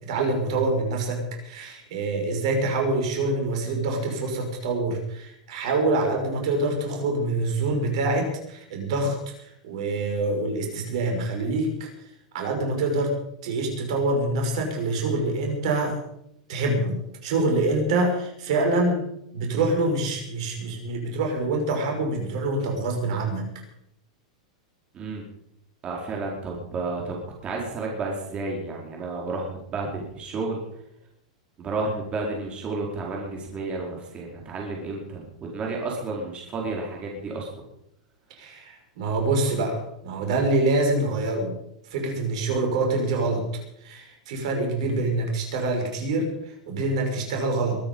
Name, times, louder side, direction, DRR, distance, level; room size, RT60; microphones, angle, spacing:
voice 1, 0.0-11.9 12.3-13.1 13.4-16.0 16.5-17.0 17.2-19.0 19.3-23.4 38.4-41.5 41.9-43.4 43.8-47.8, right 2 dB, 65° right, 2 dB, 5.9 m, -25 dB
voice 2, 25.8-30.6 31.6-37.6, right 3 dB, 30° right, -1 dB, 4.7 m, -31 dB
23.0 x 10.0 x 5.6 m, 0.77 s
hypercardioid pair, 105°, 4 cm